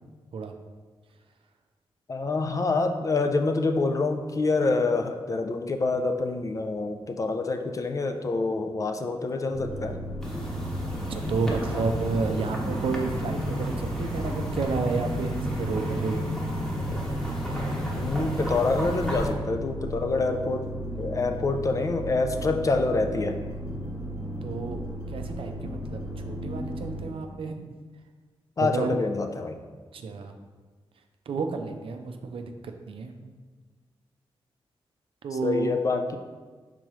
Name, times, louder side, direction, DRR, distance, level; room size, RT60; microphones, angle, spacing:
voice 1, 2.1-10.0 17.9-20.7 20.9-23.4 28.6-29.6 35.3-36.2, left 3 dB, 35° left, 6 dB, 0.4 m, -26 dB
sound 1, 9.5-27.1, equal, 30° right, 1.2 m, -35 dB
sound 2, 10.2-19.3, equal, 5° left, 1.0 m, -32 dB
voice 2, 11.1-16.2 24.4-24.8 25.1-27.7 28.6-29.0 29.9-30.3 31.3-33.3 35.2-35.8, right 4 dB, 70° right, 5 dB, 0.4 m, -31 dB
4.7 x 3.7 x 3.0 m, 1.4 s
cardioid pair, 90°, 10 cm